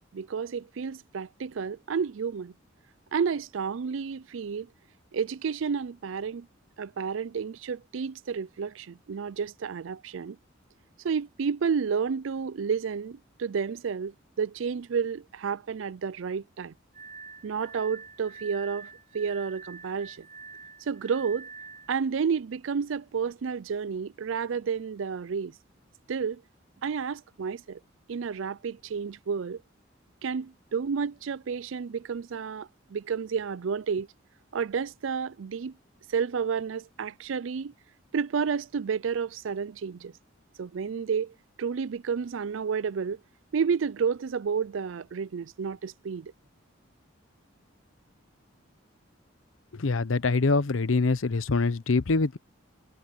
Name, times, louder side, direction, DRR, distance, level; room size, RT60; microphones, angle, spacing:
voice 1, 0.1-2.5 3.1-4.7 5.1-6.5 6.8-10.4 11.0-16.7 17.4-18.9 19.1-20.3 20.8-21.5 21.9-25.5 26.1-26.4 26.8-27.8 28.1-29.6 30.2-34.1 34.5-35.7 36.1-37.7 38.1-40.1 40.6-43.2 43.5-46.3, right 6 dB, 80° right, 0.4 m, -31 dB
Glass, 16.9-22.0, right 5 dB, 40° right, 4.8 m, -46 dB
voice 2, 49.7-52.4, left 3 dB, 90° left, 0.7 m, -24 dB
head